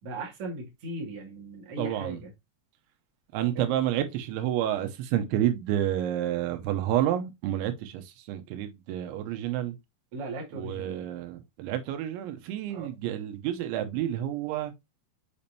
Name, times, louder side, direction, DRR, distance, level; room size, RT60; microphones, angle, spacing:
voice 1, 0.0-2.3 3.6-3.7 10.1-11.0 12.7-12.9, right 2 dB, 40° right, 2.4 m, -38 dB
voice 2, 1.8-2.2 3.3-9.8 10.5-14.7, right 12 dB, 85° right, 3.2 m, -29 dB
7.0 x 5.3 x 2.8 m
omnidirectional pair, 5.2 m